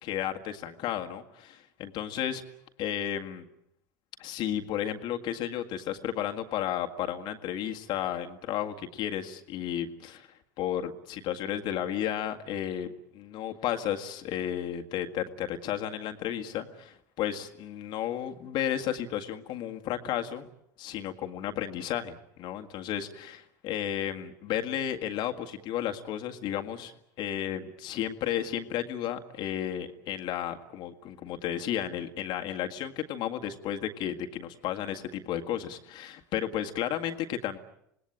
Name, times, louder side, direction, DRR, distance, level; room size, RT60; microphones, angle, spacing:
voice 1, 0.0-2.4 2.8-3.5 4.2-10.3 10.6-20.5 20.8-37.6, left 10 dB, 55° left, 5 dB, 1.9 m, -33 dB
26.5 x 19.5 x 8.8 m, 0.75 s
hypercardioid pair, 75°, 9 cm